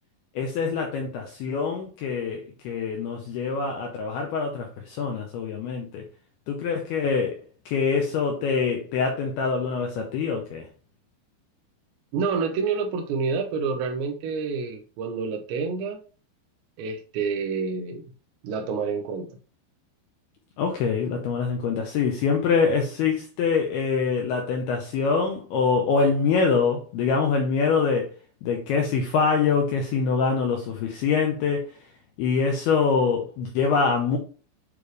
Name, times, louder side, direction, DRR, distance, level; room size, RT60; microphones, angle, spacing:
voice 1, 0.4-6.0 6.5-7.4 7.7-10.7 20.6-28.1 28.4-31.7 32.2-34.2, left 5 dB, 85° left, 2.3 m, -24 dB
voice 2, 12.1-16.0 16.8-18.1 18.4-19.3, right 5 dB, 80° right, 2.7 m, -28 dB
9.1 x 3.3 x 3.2 m
omnidirectional pair, 5.4 m